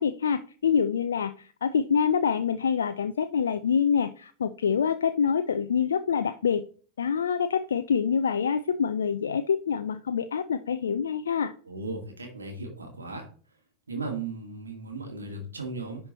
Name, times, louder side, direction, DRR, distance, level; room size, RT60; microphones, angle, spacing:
voice 1, 0.0-6.6 7.0-11.5, left 7 dB, 65° left, 11 dB, 0.4 m, -26 dB
voice 2, 11.6-13.3 13.9-16.1, right 3 dB, 75° right, 2 dB, 2.2 m, -36 dB
10.5 x 4.5 x 4.1 m, 0.42 s
figure-of-eight pair, 90°, 0 cm